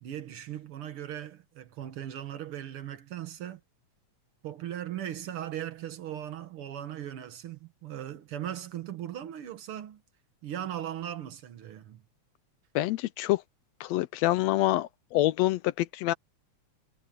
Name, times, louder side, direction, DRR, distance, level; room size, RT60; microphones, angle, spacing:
voice 1, 0.0-3.6 4.4-10.0 10.4-12.0, right 11 dB, 55° right, 1.8 m, -38 dB
voice 2, 12.8-13.4 13.8-16.1, left 16 dB, 80° left, 1.6 m, -26 dB
omnidirectional pair, 3.3 m